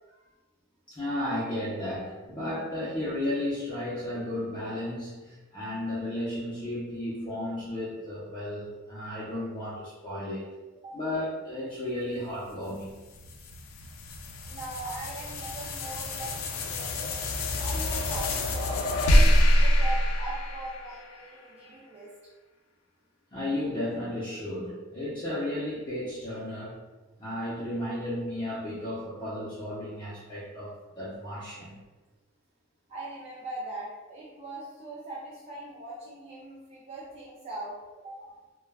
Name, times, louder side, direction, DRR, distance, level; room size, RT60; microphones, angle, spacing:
voice 1, 0.9-10.5 10.9-13.0 23.3-26.8 27.2-31.8, left 1 dB, 20° left, -10 dB, 0.6 m, -34 dB
sound 1, 12.6-21.2, equal, 80° left, 0.4 m, -26 dB
voice 2, 14.5-17.2 17.6-19.3 19.6-22.1 32.9-37.7 38.0-38.2, right 2 dB, 30° right, -7 dB, 0.4 m, -40 dB
2.2 x 2.1 x 3.3 m, 1.2 s
head